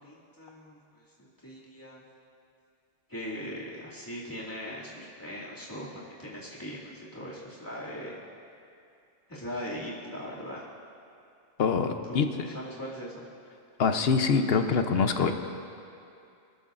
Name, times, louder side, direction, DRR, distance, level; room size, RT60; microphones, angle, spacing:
voice 1, 0.0-2.0 3.1-8.2 9.3-10.6 12.1-13.3, equal, 20° left, -7 dB, 2.4 m, -40 dB
voice 2, 11.6-12.3 13.8-15.3, left 5 dB, 70° left, 7 dB, 1.0 m, -24 dB
22.0 x 13.5 x 2.5 m, 2.6 s
omnidirectional pair, 1.1 m